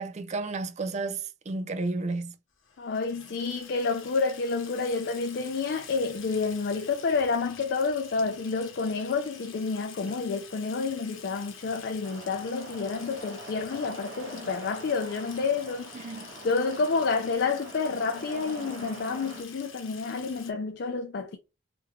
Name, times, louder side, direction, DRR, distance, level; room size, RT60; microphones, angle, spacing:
voice 1, 0.0-2.3 15.9-16.3, right 3 dB, 35° right, 0.4 m, -32 dB
Water tap faucet / Sink (filling or washing), 2.6-20.5, left 6 dB, 90° left, 0.9 m, -48 dB
voice 2, 2.8-16.1 16.4-21.4, left 4 dB, 60° left, 0.4 m, -29 dB
sound 1, 12.0-19.4, right 1 dB, 90° right, 1.0 m, -44 dB
3.4 x 3.1 x 2.3 m
head